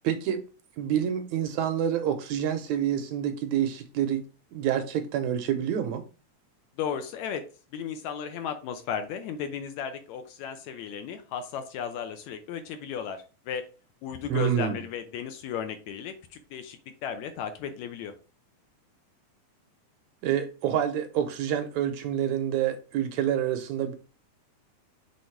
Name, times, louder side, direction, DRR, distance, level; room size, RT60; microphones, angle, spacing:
voice 1, 0.0-0.4 0.8-4.2 4.5-6.0 14.3-14.8 20.2-23.9, right 9 dB, 80° right, 1.8 m, -27 dB
voice 2, 6.8-13.7 14.0-18.2, left 8 dB, 75° left, 1.8 m, -35 dB
6.4 x 3.4 x 4.4 m
omnidirectional pair, 3.5 m